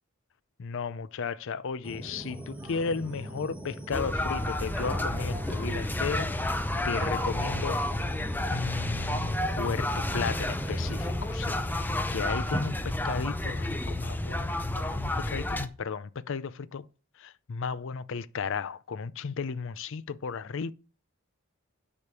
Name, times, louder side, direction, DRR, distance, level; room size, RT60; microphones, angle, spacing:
voice 1, 0.6-6.6 6.8-7.8 8.5-16.9 17.2-20.7, left 5 dB, 65° left, 0.5 m, -35 dB
sound 1, 1.8-11.3, right 1 dB, 5° right, 2.0 m, -40 dB
sound 2, 3.9-15.7, left 1 dB, 10° left, 0.7 m, -30 dB
9.7 x 5.1 x 6.9 m
head